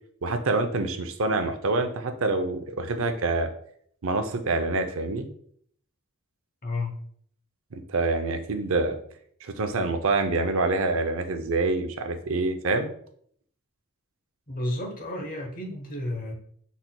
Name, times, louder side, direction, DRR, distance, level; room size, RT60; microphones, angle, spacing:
voice 1, 0.2-3.5 4.0-5.3 7.7-9.0 9.4-12.9, right 3 dB, 65° right, 7 dB, 0.6 m, -26 dB
voice 2, 14.5-16.3, left 1 dB, 40° left, 2 dB, 0.9 m, -31 dB
5.9 x 4.0 x 2.2 m, 0.63 s
head